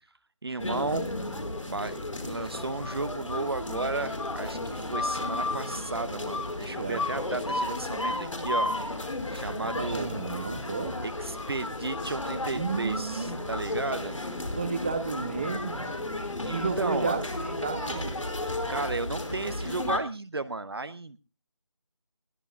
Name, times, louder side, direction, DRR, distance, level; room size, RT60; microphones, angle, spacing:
voice 1, 0.4-1.1 1.7-8.7 9.3-10.1 11.0-14.2 16.4-17.2 18.7-21.2, right 3 dB, 50° right, 12 dB, 0.7 m, -34 dB
sound 1, 0.6-20.0, left 2 dB, 85° left, 4.9 m, -33 dB
voice 2, 6.7-7.1 9.8-11.0 12.5-13.3 14.5-15.9 16.5-18.2, right 4 dB, 20° right, 8 dB, 1.2 m, -32 dB
21.0 x 18.5 x 2.3 m, 0.32 s
figure-of-eight pair, 175°, 16 cm